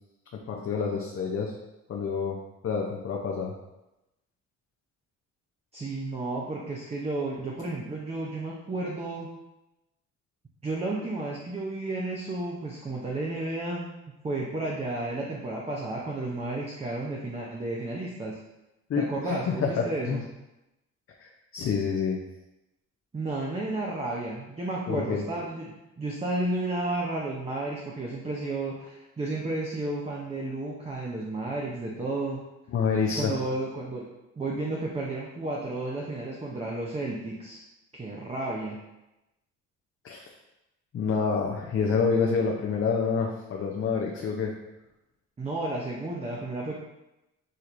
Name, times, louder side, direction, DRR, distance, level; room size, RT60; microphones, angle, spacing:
voice 1, 0.5-1.5 1.9-2.4 2.6-3.5 18.9-20.2 21.2-22.2 24.9-25.2 32.7-33.3 40.0-40.3 40.9-44.5, left 5 dB, 45° left, -1 dB, 0.6 m, -28 dB
voice 2, 5.7-9.3 10.6-13.9 14.2-18.4 19.0-20.2 23.1-32.4 33.2-34.1 34.4-37.6 37.9-38.8 45.4-46.8, right 2 dB, 20° right, -3 dB, 0.7 m, -32 dB
6.4 x 2.8 x 2.6 m, 0.95 s
cardioid pair, 90°, 30 cm